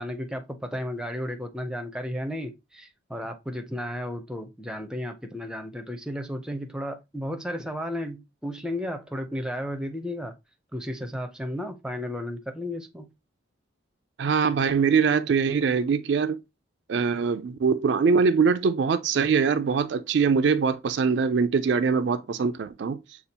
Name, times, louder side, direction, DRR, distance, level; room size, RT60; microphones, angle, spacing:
voice 1, 0.0-10.3 10.7-13.1, equal, 5° right, 0.5 m, -33 dB
voice 2, 14.2-16.4 16.9-23.0, right 5 dB, 60° right, 0.3 m, -23 dB
6.7 x 2.4 x 2.8 m
head